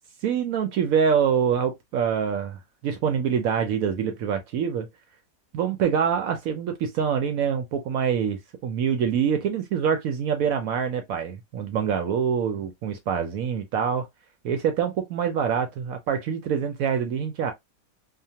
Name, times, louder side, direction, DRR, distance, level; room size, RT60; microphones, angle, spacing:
voice 1, 0.2-4.9 5.5-14.1 14.4-17.5, right 7 dB, 70° right, 0.9 m, -25 dB
2.8 x 2.1 x 2.7 m
omnidirectional pair, 1.8 m